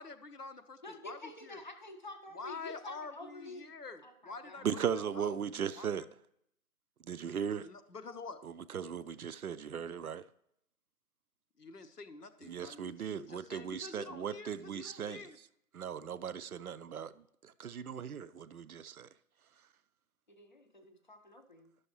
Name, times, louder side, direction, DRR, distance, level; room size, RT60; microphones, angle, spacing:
voice 1, 0.0-1.6 2.3-5.4 5.7-6.1 7.5-8.4 11.6-15.4, left 4 dB, 90° left, 0.9 m, -47 dB
voice 2, 0.8-3.6 4.0-4.7 20.3-21.7, left 2 dB, 30° left, 0.5 m, -49 dB
voice 3, 4.6-6.1 7.0-7.7 8.4-10.2 12.4-15.2 15.7-19.1, right 8 dB, 70° right, 0.5 m, -38 dB
11.5 x 6.3 x 3.0 m
figure-of-eight pair, 145°, 46 cm